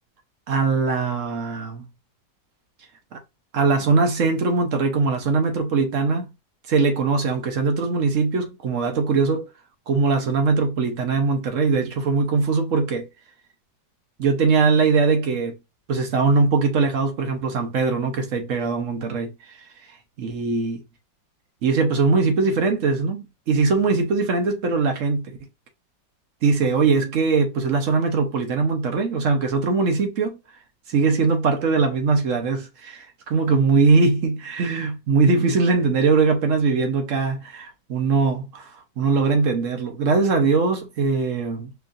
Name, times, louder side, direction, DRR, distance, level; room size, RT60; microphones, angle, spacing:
voice 1, 0.5-1.9 3.1-3.2 3.5-6.3 6.7-9.5 9.9-13.1 14.2-15.5 15.9-19.3 20.2-20.8 21.6-25.4 26.4-30.4 30.9-41.7, right 4 dB, 55° right, 1.0 m, -21 dB
4.5 x 2.7 x 2.5 m
omnidirectional pair, 2.0 m